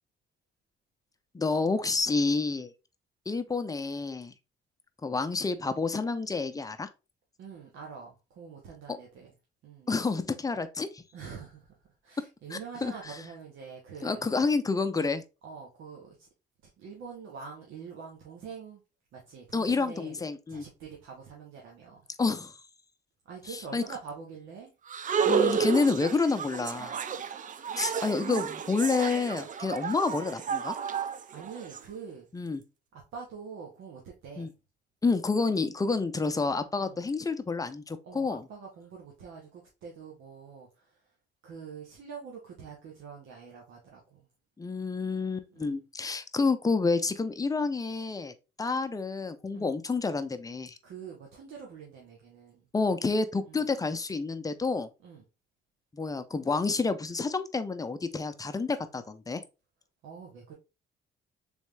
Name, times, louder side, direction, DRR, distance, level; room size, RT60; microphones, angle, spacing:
voice 1, 1.3-2.7 3.3-4.3 5.0-6.9 9.9-11.0 12.5-13.2 14.0-15.2 19.5-20.6 22.2-22.6 23.7-23.8 25.3-27.0 27.8-30.8 32.3-32.6 34.4-34.5 35.0-38.4 44.6-50.8 52.7-54.9 55.9-59.4, left 4 dB, 20° left, 0.5 m, -29 dB
voice 2, 7.4-9.3 9.6-9.9 11.1-11.7 12.0-14.2 15.4-16.3 16.8-18.8 19.1-20.2 20.5-22.0 23.2-24.7 31.1-32.3 32.9-34.5 36.8-37.0 38.0-41.1 41.4-44.3 45.5-45.8 49.5-49.7 50.8-52.7 53.5-53.7 55.0-55.2 60.0-60.5, right 6 dB, 80° right, 1.0 m, -45 dB
sound 1, 24.9-31.8, right 7 dB, 40° right, 0.4 m, -31 dB
3.5 x 3.2 x 3.2 m
cardioid pair, 90°, 20 cm